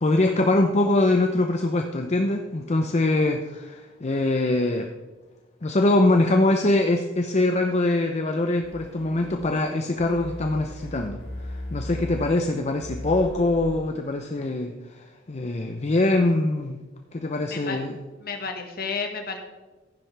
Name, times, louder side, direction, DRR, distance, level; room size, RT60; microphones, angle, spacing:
voice 1, 0.0-4.9 5.6-11.2 11.7-16.8 17.1-18.0, left 2 dB, 35° left, 5 dB, 0.7 m, -23 dB
sound 1, 8.6-9.3 10.0-12.3 12.8-13.7, left 1 dB, 80° left, 2.9 m, -37 dB
voice 2, 17.4-17.8 18.2-19.4, left 5 dB, 55° left, 4 dB, 1.6 m, -31 dB
14.5 x 10.5 x 3.4 m, 1.2 s
head